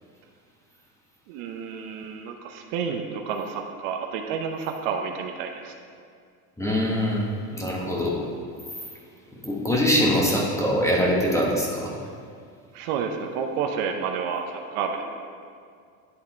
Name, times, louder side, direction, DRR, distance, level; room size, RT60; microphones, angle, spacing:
voice 1, 1.3-5.7 12.7-15.0, right 6 dB, 60° right, 4 dB, 0.8 m, -30 dB
voice 2, 6.6-8.2 9.4-11.9, equal, 5° left, -3 dB, 1.3 m, -23 dB
10.5 x 3.6 x 4.5 m, 2.2 s
supercardioid pair, 120°, 45 cm